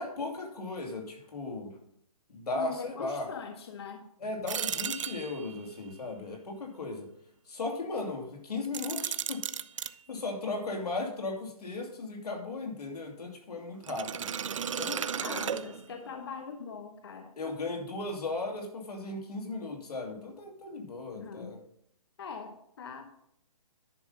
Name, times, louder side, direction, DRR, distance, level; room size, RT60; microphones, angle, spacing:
voice 1, 0.0-1.7 2.3-3.3 4.2-7.1 7.5-9.4 10.1-14.3 14.8-15.6 17.4-21.6, left 3 dB, 90° left, 2 dB, 2.7 m, -36 dB
voice 2, 2.5-4.0 15.2-17.3 21.1-21.6 22.2-23.0, left 5 dB, 45° left, 6 dB, 0.9 m, -42 dB
sound 1, 4.5-5.6 8.6-9.9 13.8-16.1, right 8 dB, 55° right, 0.4 m, -35 dB
10.5 x 5.5 x 5.5 m, 0.71 s
hypercardioid pair, 170°, 19 cm